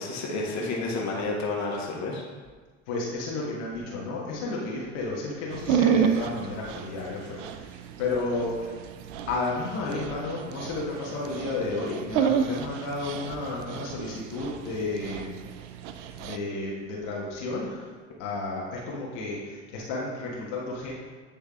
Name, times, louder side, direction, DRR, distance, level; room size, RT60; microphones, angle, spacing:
voice 1, 0.0-2.2 12.3-12.6, left 3 dB, 50° left, -2 dB, 1.4 m, -31 dB
voice 2, 2.9-8.8 9.3-15.3 16.2-17.9 18.2-20.9, left 3 dB, 75° left, -4 dB, 1.5 m, -32 dB
Dog, 5.5-16.4, right 8 dB, 80° right, 0.5 m, -30 dB
8.7 x 3.4 x 3.6 m, 1.4 s
hypercardioid pair, 70°, 36 cm